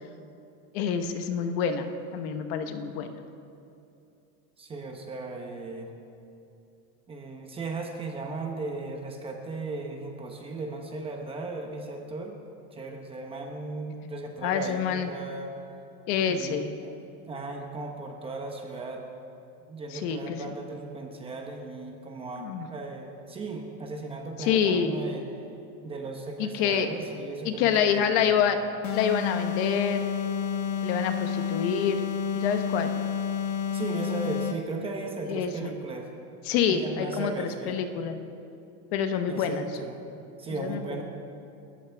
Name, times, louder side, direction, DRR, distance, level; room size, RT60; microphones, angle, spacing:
voice 1, 0.7-3.1 14.4-15.1 16.1-16.7 19.9-20.4 22.4-22.7 24.4-24.9 26.4-26.9 27.4-28.6 28.9-30.0 30.8-32.0 32.3-32.9 35.3-35.7 36.4-38.2 38.9-39.6 40.6-40.8, left 7 dB, 45° left, 7 dB, 1.1 m, -27 dB
voice 2, 4.6-5.9 7.1-12.4 12.7-15.6 16.2-17.0 17.3-19.0 19.7-25.3 25.8-28.4 33.7-36.1 36.7-37.8 39.3-40.0 40.4-41.0, right 3 dB, 15° right, 2 dB, 1.0 m, -36 dB
sound 1, 28.8-34.7, left 7 dB, 70° left, 1.8 m, -30 dB
29.5 x 14.0 x 3.5 m, 2.7 s
supercardioid pair, 175°, 44 cm